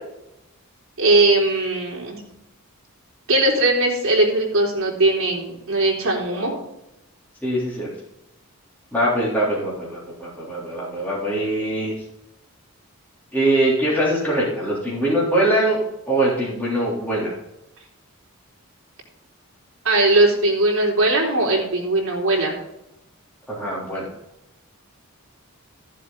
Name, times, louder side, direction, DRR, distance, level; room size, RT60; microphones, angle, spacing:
voice 1, 1.0-2.2 3.3-6.5 19.8-22.6, right 2 dB, 65° right, -2 dB, 3.8 m, -19 dB
voice 2, 7.4-7.9 8.9-11.9 13.3-15.8 16.1-17.3 23.5-24.1, right 1 dB, 10° left, -7 dB, 3.5 m, -22 dB
15.0 x 7.4 x 4.0 m, 0.87 s
head